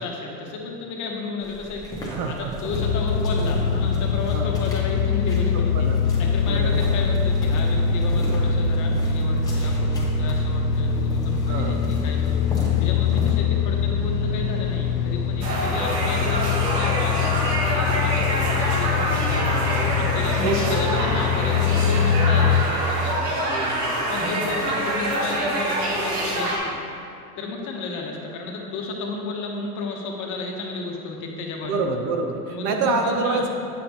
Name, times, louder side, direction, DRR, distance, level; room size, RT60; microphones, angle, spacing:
voice 1, 0.0-2.3 2.6-5.7 6.2-17.3 17.6-19.4 20.0-23.4 24.1-27.0 27.4-31.8 32.5-33.5, left 3 dB, 40° left, 0 dB, 1.0 m, -32 dB
sound 1, 1.4-13.3, equal, 10° left, 1.5 m, -37 dB
voice 2, 2.1-2.6 4.3-4.5 5.7-6.0 6.5-6.8 11.5-11.8 15.6-15.8 19.3-19.7 20.4-20.8 21.1-21.4 23.3-23.9 31.7-33.5, right 4 dB, 40° right, 4 dB, 0.6 m, -27 dB
sound 2, 2.7-22.6, left 6 dB, 75° left, 0.5 m, -23 dB
sound 3, 15.4-26.6, right 1 dB, 85° right, 1.4 m, -25 dB
8.3 x 5.1 x 3.0 m, 2.7 s
hypercardioid pair, 95°, 46 cm